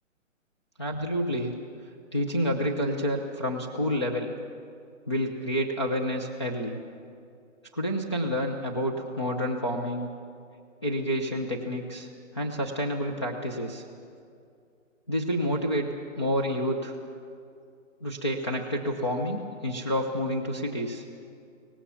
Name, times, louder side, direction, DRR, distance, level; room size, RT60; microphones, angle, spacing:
voice 1, 0.8-1.5 2.1-4.3 5.1-6.8 7.7-10.1 10.8-12.1 12.3-13.8 15.1-15.9 16.2-17.0 18.0-21.0, equal, 20° left, 1 dB, 0.7 m, -29 dB
24.0 x 18.5 x 7.0 m, 2.4 s
hypercardioid pair, 175°, 39 cm